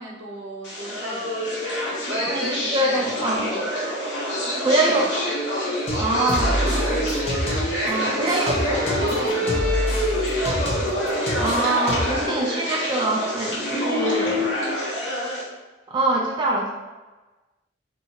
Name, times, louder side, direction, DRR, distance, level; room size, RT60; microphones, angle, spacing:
voice 1, 0.0-3.8 4.4-5.1 6.1-7.1 7.9-10.0, right 1 dB, 70° right, -1 dB, 0.8 m, -37 dB
sound 1, 0.6-15.4, left 1 dB, 85° left, 1.3 m, -26 dB
voice 2, 2.1-3.5 4.6-5.1 6.0-6.5 7.8-9.3 11.3-14.5 15.9-16.7, right 2 dB, 25° right, -2 dB, 0.3 m, -24 dB
sound 2, 5.9-7.9 8.3-12.3, equal, 35° left, 0.8 m, -27 dB
2.8 x 2.3 x 4.2 m, 1.2 s
head